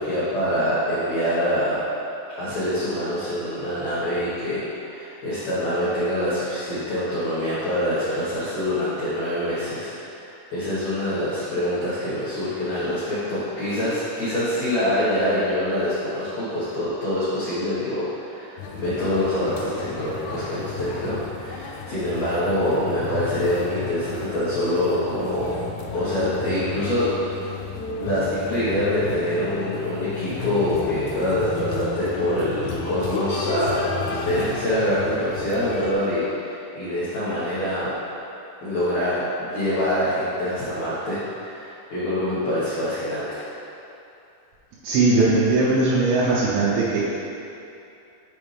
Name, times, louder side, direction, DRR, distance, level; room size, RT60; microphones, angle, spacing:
voice 1, 0.0-1.8 2.4-9.9 10.2-25.5 25.9-27.1 28.0-37.9 38.6-43.4, left 1 dB, 65° left, -13 dB, 1.8 m, -25 dB
sound 1, 18.6-35.9, left 5 dB, 85° left, 3.1 m, -32 dB
voice 2, 44.8-47.0, right 3 dB, 75° right, -8 dB, 3.0 m, -19 dB
7.8 x 5.3 x 3.4 m, 2.7 s
omnidirectional pair, 5.4 m